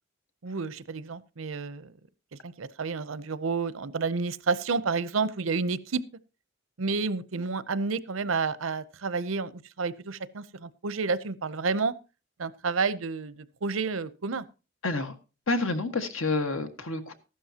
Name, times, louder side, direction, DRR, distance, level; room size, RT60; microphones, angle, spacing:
voice 1, 0.4-1.9 2.4-6.0 6.8-11.9 12.4-14.4, right 4 dB, 85° right, 0.7 m, -30 dB
voice 2, 14.8-15.1 15.5-17.1, left 2 dB, 85° left, 1.6 m, -28 dB
14.5 x 12.0 x 2.9 m
head